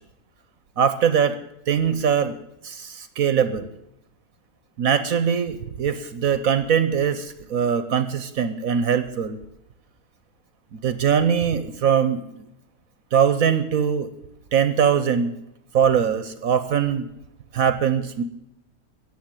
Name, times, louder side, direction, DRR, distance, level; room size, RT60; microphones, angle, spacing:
voice 1, 0.8-1.4 1.7-2.4 2.6-3.7 4.8-9.4 10.8-12.2 13.1-14.1 14.5-15.4 15.7-17.1 17.5-18.2, right 7 dB, 65° right, 10 dB, 1.2 m, -21 dB
15.0 x 8.6 x 9.0 m, 0.83 s
omnidirectional pair, 1.7 m